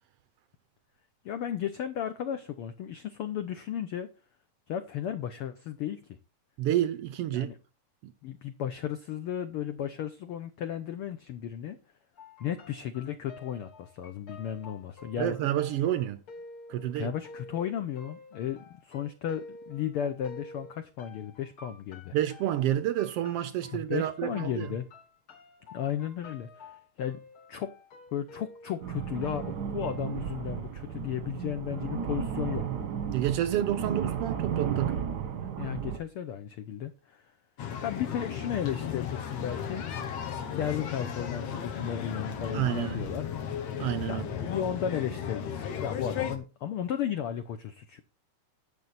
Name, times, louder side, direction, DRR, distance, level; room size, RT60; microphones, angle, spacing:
voice 1, 1.2-4.1 4.7-6.0 7.3-7.6 8.2-11.8 12.4-15.4 16.8-22.2 23.7-24.9 25.7-27.2 27.5-27.7 28.1-32.6 35.6-37.3 37.8-39.8 40.5-43.3 44.1-48.0, left 9 dB, 85° left, 1.2 m, -34 dB
voice 2, 6.6-7.5 8.0-8.1 15.2-16.2 16.7-17.1 22.1-24.7 33.1-35.0 42.5-43.1 43.8-44.2, right 12 dB, 85° right, 1.3 m, -29 dB
sound 1, 12.2-30.4, left 2 dB, 45° left, 3.0 m, -50 dB
sound 2, 28.8-36.0, right 8 dB, 55° right, 1.1 m, -33 dB
sound 3, 37.6-46.4, left 7 dB, 65° left, 2.4 m, -35 dB
11.0 x 7.2 x 4.1 m
omnidirectional pair, 3.5 m